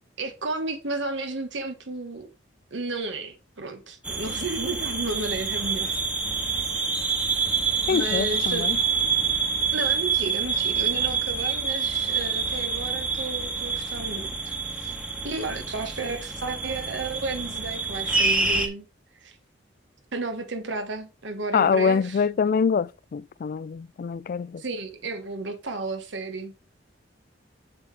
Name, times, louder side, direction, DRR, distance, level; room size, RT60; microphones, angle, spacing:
voice 1, 0.2-2.3 2.7-6.0 7.9-8.7 9.7-15.0 15.2-18.9 19.2-19.3 20.1-22.2 24.6-26.5, right 3 dB, 75° right, 1.3 m, -33 dB
sound 1, 4.0-18.7, right 4 dB, 5° right, 1.2 m, -27 dB
voice 2, 7.9-8.8 21.5-24.6, left 6 dB, 50° left, 0.3 m, -24 dB
7.3 x 6.7 x 3.4 m
head